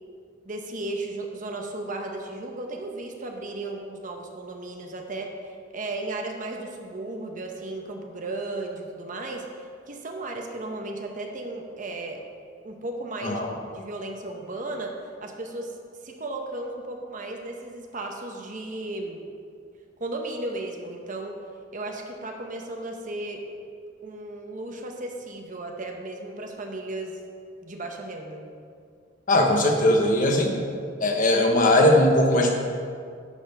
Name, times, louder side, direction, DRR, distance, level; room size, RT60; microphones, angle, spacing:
voice 1, 0.4-5.3 5.7-9.4 9.9-12.2 12.6-13.5 13.7-14.9 15.2-15.7 16.0-19.2 20.0-21.4 21.7-23.5 24.0-27.2 27.6-28.4, right 2 dB, 45° right, 2 dB, 0.9 m, -35 dB
voice 2, 29.3-30.6 31.0-32.6, left 1 dB, 45° left, 2 dB, 1.0 m, -19 dB
10.5 x 4.2 x 5.5 m, 2.2 s
head